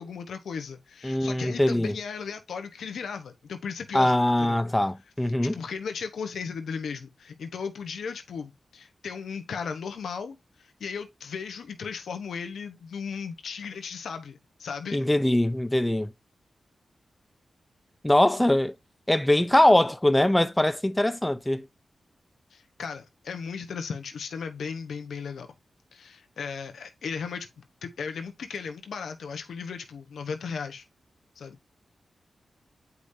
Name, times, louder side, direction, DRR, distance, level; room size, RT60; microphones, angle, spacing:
voice 1, 0.0-4.6 5.5-15.1 22.5-25.5 25.9-30.8 31.4-31.6, left 6 dB, 85° left, 1.0 m, -36 dB
voice 2, 1.0-1.9 3.9-5.5 14.9-16.1 18.0-18.7 19.1-21.7, left 1 dB, 10° left, 0.5 m, -22 dB
8.3 x 4.9 x 2.7 m
cardioid pair, 60°, 0 cm